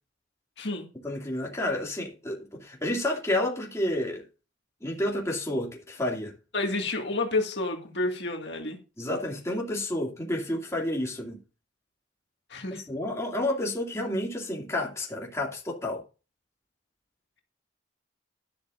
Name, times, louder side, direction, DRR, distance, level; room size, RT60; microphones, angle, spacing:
voice 1, 1.0-4.2 4.8-6.3 9.0-11.4 12.7-16.0, left 1 dB, 15° left, 2.4 m, -30 dB
voice 2, 6.5-8.8 12.5-12.8, left 2 dB, 60° left, 2.0 m, -29 dB
12.0 x 11.0 x 2.6 m
head